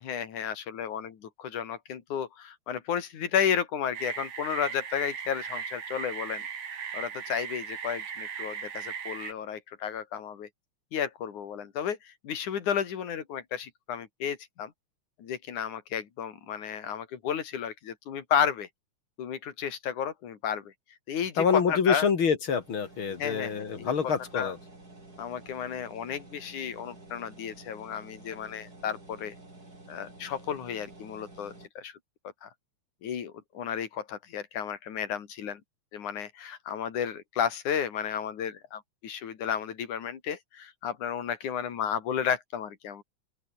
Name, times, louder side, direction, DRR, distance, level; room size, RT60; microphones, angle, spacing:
voice 1, 0.0-6.5 6.9-10.5 10.9-14.7 15.2-18.7 19.2-20.7 21.1-22.1 23.2-23.9 24.3-24.5 25.2-29.4 29.9-32.0 32.4-32.5 33.0-35.6 35.9-43.0, left 8 dB, 80° left, 3.9 m, -32 dB
sound 1, 3.9-9.3, right 7 dB, 85° right, 4.4 m, -38 dB
voice 2, 21.4-24.6, left 6 dB, 45° left, 2.6 m, -26 dB
sound 2, 22.6-31.7, right 2 dB, 30° right, 7.1 m, -50 dB
open air
omnidirectional pair, 3.4 m